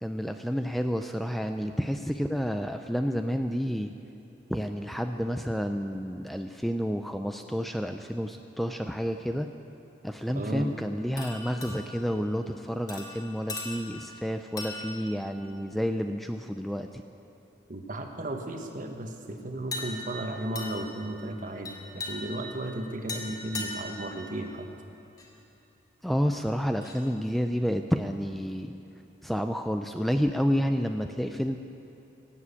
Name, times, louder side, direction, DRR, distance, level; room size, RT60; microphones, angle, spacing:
voice 1, 0.0-3.9 4.5-9.5 10.0-17.0 26.0-28.7 29.2-31.6, equal, ahead, 6 dB, 0.4 m, -30 dB
voice 2, 10.3-10.7 17.7-24.7, right 1 dB, 50° right, 4 dB, 1.3 m, -35 dB
sound 1, 11.2-12.1 12.9-14.1 14.6-15.1 15.7-15.9 19.7-20.2 20.5-21.0 21.6-22.5 23.1-24.0 25.2-25.3 26.8-27.1, left 2 dB, 20° left, 2.1 m, -38 dB
17.5 x 7.6 x 8.4 m, 2.9 s
head